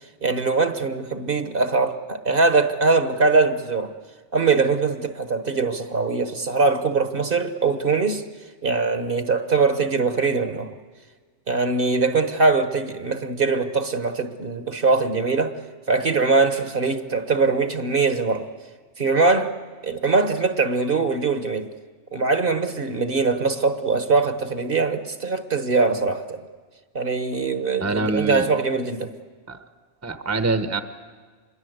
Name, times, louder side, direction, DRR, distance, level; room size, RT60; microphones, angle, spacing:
voice 1, 0.2-3.9 4.3-8.2 8.6-10.7 11.5-15.5 15.9-18.5 19.0-19.5 19.8-21.7 22.1-26.5 26.9-29.1, right 4 dB, 50° right, 1.4 m, -22 dB
voice 2, 27.8-28.5 29.5-29.6 30.0-30.8, right 3 dB, 15° right, 1.0 m, -24 dB
26.5 x 22.0 x 8.1 m
omnidirectional pair, 1.2 m